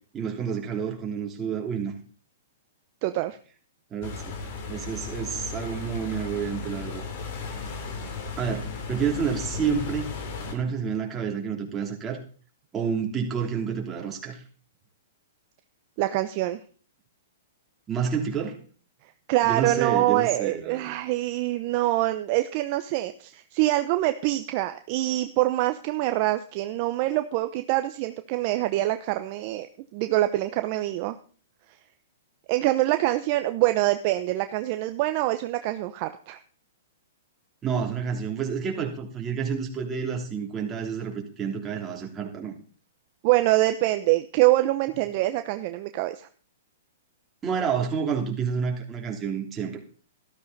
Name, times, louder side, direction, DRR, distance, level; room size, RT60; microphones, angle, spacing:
voice 1, 0.1-2.0 3.9-4.4 4.7-7.0 7.5-7.6 8.4-10.2 10.5-12.2 12.7-14.4 17.9-18.6 19.4-20.9 37.6-42.5 47.4-49.8, right 6 dB, 20° right, 0 dB, 3.2 m, -29 dB
voice 2, 3.0-3.4 16.0-16.6 19.3-29.7 29.9-31.2 32.5-36.4 43.2-46.3, right 16 dB, 45° right, 9 dB, 0.8 m, -25 dB
sound 1, 4.0-10.5, left 4 dB, 50° left, 3.5 m, -35 dB
13.0 x 12.5 x 4.1 m, 0.42 s
hypercardioid pair, 130°, 0 cm